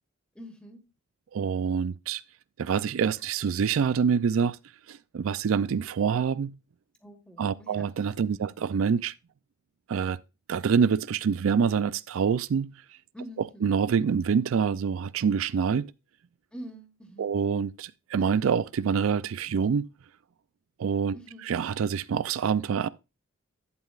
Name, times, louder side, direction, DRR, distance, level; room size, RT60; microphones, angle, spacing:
voice 1, 0.3-0.9 7.0-7.9 8.2-8.5 13.1-13.7 16.5-17.3 21.1-21.5, right 1 dB, 5° left, 1.5 m, -45 dB
voice 2, 1.3-2.2 2.6-4.6 4.9-6.6 7.4-9.1 9.9-10.2 10.5-12.7 13.6-15.9 17.2-19.9 20.8-21.2 21.5-22.9, right 6 dB, 85° right, 0.4 m, -26 dB
11.0 x 8.8 x 2.4 m
head